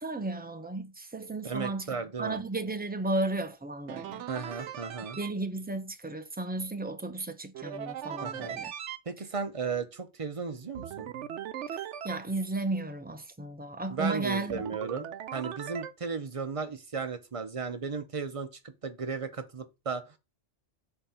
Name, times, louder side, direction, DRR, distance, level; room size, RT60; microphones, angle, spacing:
voice 1, 0.0-4.2 5.2-8.7 11.7-14.6, right 2 dB, 15° right, 0.4 m, -34 dB
voice 2, 1.4-2.4 4.3-5.2 8.2-8.6 9.1-11.1 13.9-20.1, right 5 dB, 35° right, 0.7 m, -35 dB
sound 1, 3.9-5.3 7.5-9.0 10.7-12.2 14.5-15.9, right 9 dB, 75° right, 0.9 m, -39 dB
4.6 x 3.9 x 5.6 m
omnidirectional pair, 1.2 m